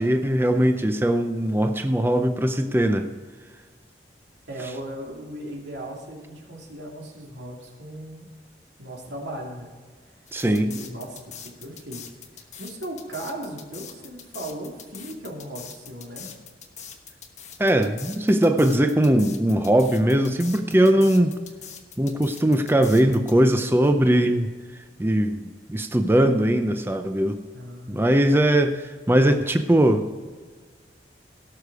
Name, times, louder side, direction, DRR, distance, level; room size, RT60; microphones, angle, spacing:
voice 1, 0.0-3.1 10.3-10.7 17.6-21.4 22.0-24.5 25.0-27.4 27.9-30.3, right 1 dB, 15° right, 7 dB, 0.5 m, -20 dB
voice 2, 4.5-8.3 8.8-9.7 10.1-10.2 10.6-12.1 12.3-16.3 27.5-28.2, right 1 dB, 90° right, 0 dB, 2.7 m, -37 dB
sound 1, 10.3-23.3, left 8 dB, 40° left, 1.1 m, -42 dB
17.5 x 6.6 x 4.8 m, 1.5 s
head